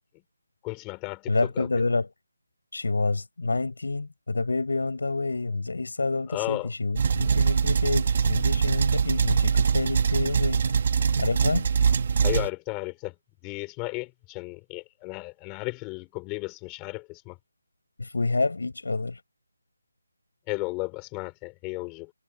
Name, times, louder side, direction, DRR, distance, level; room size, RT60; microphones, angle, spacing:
voice 1, 0.6-1.7 6.3-6.7 12.2-13.1 13.4-17.4 20.5-22.1, left 26 dB, 10° left, 4.8 m, -34 dB
voice 2, 1.3-2.1 2.7-10.7 11.2-11.7 18.0-19.2, left 3 dB, 70° left, 7.2 m, -28 dB
sound 1, 7.0-12.5, right 6 dB, 30° right, 1.8 m, -23 dB
hypercardioid pair, 175°, 0 cm